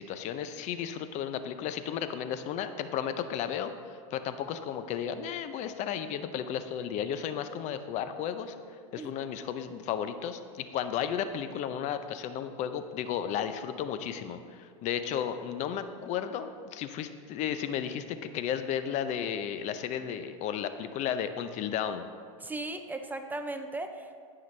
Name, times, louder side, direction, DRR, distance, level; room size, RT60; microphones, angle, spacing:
voice 1, 0.0-8.6 8.9-22.1, left 9 dB, 40° left, 10 dB, 0.6 m, -34 dB
voice 2, 22.4-24.2, right 2 dB, 10° right, 7 dB, 0.5 m, -37 dB
16.0 x 5.8 x 3.2 m, 2.1 s
hypercardioid pair, 115°, 18 cm